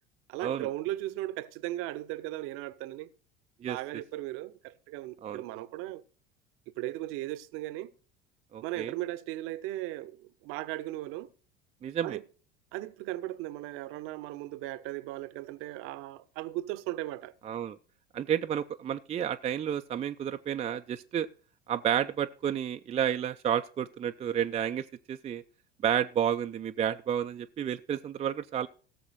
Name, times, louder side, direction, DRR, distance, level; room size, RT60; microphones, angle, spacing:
voice 1, 0.3-3.1 3.6-6.0 6.8-7.9 8.6-11.3 12.0-12.2 12.7-17.3, right 16 dB, 50° right, 0.8 m, -37 dB
voice 2, 8.5-8.9 11.8-12.2 17.4-17.8 18.1-21.3 21.7-25.4 25.8-28.7, right 9 dB, 20° right, 0.5 m, -31 dB
17.0 x 7.0 x 4.1 m
figure-of-eight pair, 70°, 29 cm